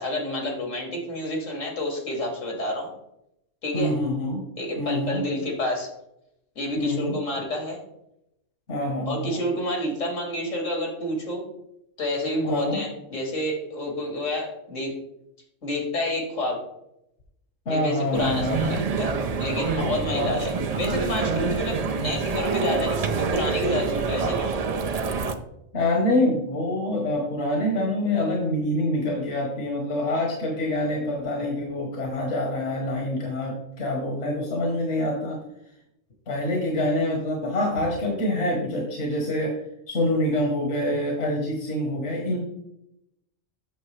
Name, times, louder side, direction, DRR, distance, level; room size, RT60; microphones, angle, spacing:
voice 1, 0.0-2.9 3.6-3.9 4.6-5.9 6.6-7.8 9.1-11.4 12.0-15.0 15.6-16.6 17.7-24.5, left 1 dB, 85° left, 1 dB, 2.4 m, -29 dB
voice 2, 3.7-4.4 4.8-5.2 6.8-7.2 8.7-9.4 12.4-12.8 17.6-18.7 20.1-20.3 25.7-35.4 36.3-39.5 39.9-42.4, left 1 dB, 70° left, 0 dB, 1.6 m, -26 dB
sound 1, 18.1-25.3, right 4 dB, 45° right, 0.5 m, -26 dB
8.3 x 6.4 x 3.2 m, 0.82 s
omnidirectional pair, 1.3 m